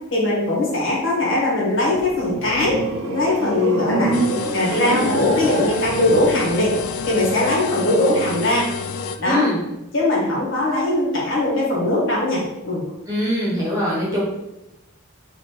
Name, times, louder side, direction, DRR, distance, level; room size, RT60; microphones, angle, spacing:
voice 1, 0.1-2.8 3.1-4.2 4.5-6.7 7.1-8.6 9.2-9.5 9.9-12.8, left 1 dB, 65° left, -5 dB, 1.6 m, -20 dB
sound 1, 1.8-7.2, right 3 dB, 80° right, 0.6 m, -26 dB
sound 2, 4.1-9.2, left 6 dB, 80° left, 0.3 m, -29 dB
voice 2, 9.2-9.6 13.1-14.2, equal, 15° right, -6 dB, 1.2 m, -22 dB
4.2 x 2.7 x 4.4 m, 0.91 s
head